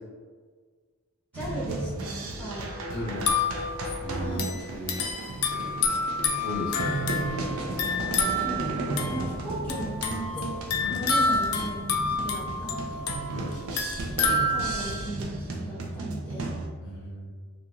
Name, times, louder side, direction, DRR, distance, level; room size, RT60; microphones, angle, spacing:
voice 1, 1.3-2.7 4.2-4.5 8.4-10.6 10.9-13.1 14.2-16.5, right 1 dB, 5° left, -10 dB, 0.6 m, -37 dB
sound 1, 1.3-16.7, right 2 dB, 70° right, 0.4 m, -34 dB
voice 2, 2.9-3.3 4.0-4.9 6.4-7.0 10.8-11.0 13.2-13.5 16.8-17.3, equal, 50° left, -6 dB, 0.9 m, -35 dB
sound 2, 3.1-15.0, left 3 dB, 85° left, 0.4 m, -29 dB
2.9 x 2.5 x 2.3 m, 1.5 s
head